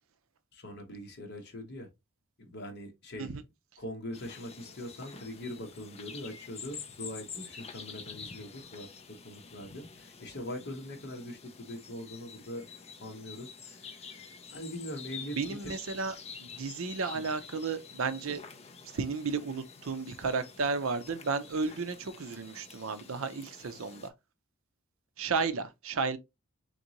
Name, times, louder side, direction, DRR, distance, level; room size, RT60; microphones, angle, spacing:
voice 1, 0.5-1.9 2.4-3.3 3.8-8.9 9.2-12.6 13.0-15.7 17.1-17.2, left 1 dB, 50° left, 1.2 m, -42 dB
sound 1, 4.1-24.1, left 6 dB, 30° left, 0.5 m, -48 dB
voice 2, 15.4-16.1 16.4-18.4 18.9-24.1 25.2-26.2, right 4 dB, 60° right, 0.6 m, -33 dB
3.9 x 3.6 x 2.9 m
head